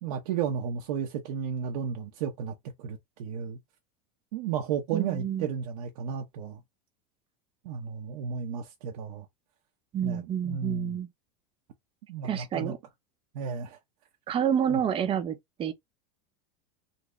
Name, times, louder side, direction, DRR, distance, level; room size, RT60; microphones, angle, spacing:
voice 1, 0.0-3.6 4.3-6.6 7.6-9.3 10.0-11.0 12.1-12.7 13.3-13.8 14.7-14.8, right 7 dB, 75° right, 0.8 m, -33 dB
voice 2, 4.9-5.5 9.9-11.1 12.2-12.8 14.3-15.7, right 9 dB, 30° right, 0.6 m, -29 dB
4.0 x 2.0 x 3.2 m
supercardioid pair, 130°, 19 cm